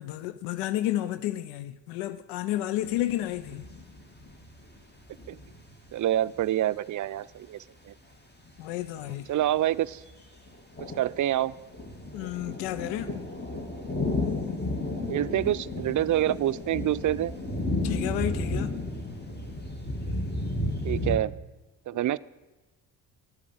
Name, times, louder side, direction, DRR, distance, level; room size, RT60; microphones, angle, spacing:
voice 1, 0.0-3.7 8.6-9.3 12.1-13.1 17.8-18.7, left 13 dB, 85° left, 0.6 m, -31 dB
sound 1, 2.8-4.8 5.1-5.9 6.4-6.6 8.5-8.6 9.0-10.1 10.4-21.2, left 2 dB, 25° left, 2.4 m, -33 dB
voice 2, 5.9-7.6 7.9-8.0 9.3-10.0 11.0-11.5 15.1-17.4 20.8-21.3 21.9-22.2, right 12 dB, 45° right, 0.5 m, -26 dB
12.0 x 8.4 x 7.9 m
hypercardioid pair, 50°, 44 cm